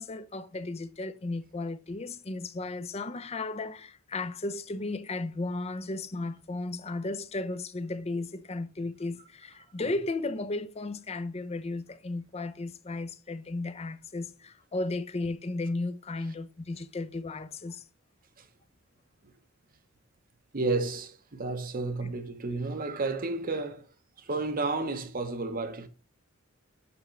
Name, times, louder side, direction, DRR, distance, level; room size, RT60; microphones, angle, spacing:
voice 1, 0.0-17.8 22.0-22.1, left 2 dB, 30° left, 0.6 m, -35 dB
voice 2, 20.5-23.8 24.2-25.9, right 3 dB, 45° right, 0.9 m, -31 dB
6.9 x 6.6 x 3.2 m
head